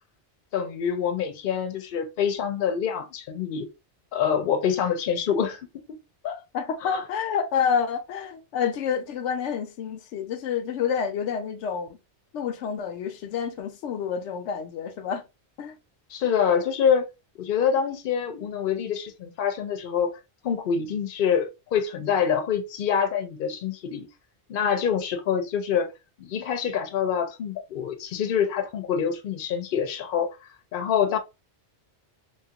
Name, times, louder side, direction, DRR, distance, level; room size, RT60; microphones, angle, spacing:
voice 1, 0.5-3.7 4.1-6.0 6.2-6.4 6.9-7.0 16.1-17.1 17.4-24.1 24.5-25.9 26.2-30.4 30.7-31.2, left 7 dB, 55° left, 0.7 m, -26 dB
voice 2, 6.5-11.9 12.3-15.2 15.6-15.8, left 7 dB, 85° left, 0.9 m, -28 dB
3.0 x 2.4 x 2.8 m
omnidirectional pair, 1.2 m